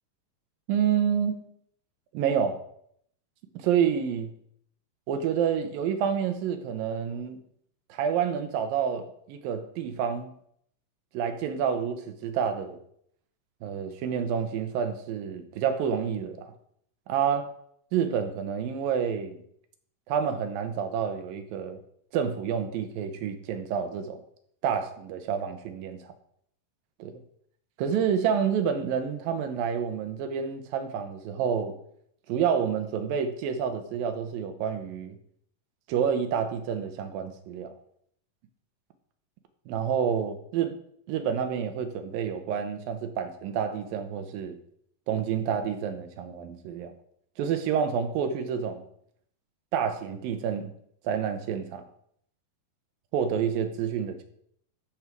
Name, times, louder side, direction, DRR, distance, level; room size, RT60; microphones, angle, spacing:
voice 1, 0.7-1.5 2.1-2.6 3.5-4.3 5.1-7.4 7.9-10.3 11.1-12.8 13.6-16.5 17.1-17.5 17.9-19.4 20.1-21.8 22.1-24.2 24.6-26.1 27.0-27.1 27.8-31.7 32.3-35.2 35.9-37.7 39.7-40.8 41.1-44.6 45.1-46.9 47.4-48.8 49.7-50.7 51.0-51.8 53.1-54.2, right 7 dB, 80° right, 2.8 m, -28 dB
12.0 x 7.4 x 4.6 m
omnidirectional pair, 4.1 m